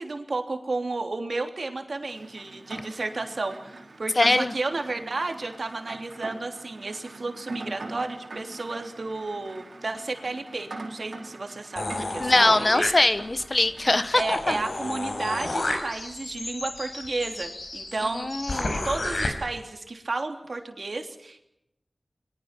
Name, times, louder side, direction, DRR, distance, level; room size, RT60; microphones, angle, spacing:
voice 1, 0.0-12.9 14.1-21.4, right 3 dB, 70° right, 5 dB, 3.2 m, -32 dB
Rain, 2.1-15.4, right 2 dB, 85° right, 4.2 m, -42 dB
voice 2, 4.2-4.5 12.2-14.6 18.1-18.9, left 2 dB, 40° left, 13 dB, 1.2 m, -22 dB
sound 1, 11.8-13.4 13.8-13.9 14.1-19.3, left 2 dB, 80° left, 5.7 m, -32 dB
29.5 x 22.5 x 6.0 m, 0.82 s
wide cardioid pair, 75°, 0 cm